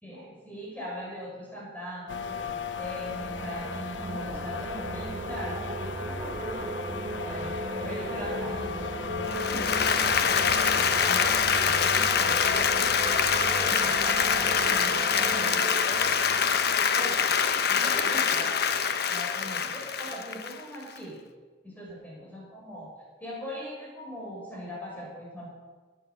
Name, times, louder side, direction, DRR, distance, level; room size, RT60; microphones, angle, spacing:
voice 1, 0.0-6.7 7.1-15.6 16.9-17.3 17.7-18.7 19.1-21.2 21.6-22.9 23.2-25.5, equal, 10° left, -5 dB, 5.7 m, -40 dB
sound 1, 2.1-14.9, left 5 dB, 90° left, 0.8 m, -37 dB
sound 2, 2.8-18.4, right 2 dB, 30° right, 0.6 m, -37 dB
Applause, 9.2-21.0, left 7 dB, 60° left, 0.8 m, -25 dB
15.5 x 9.1 x 6.9 m, 1.4 s
head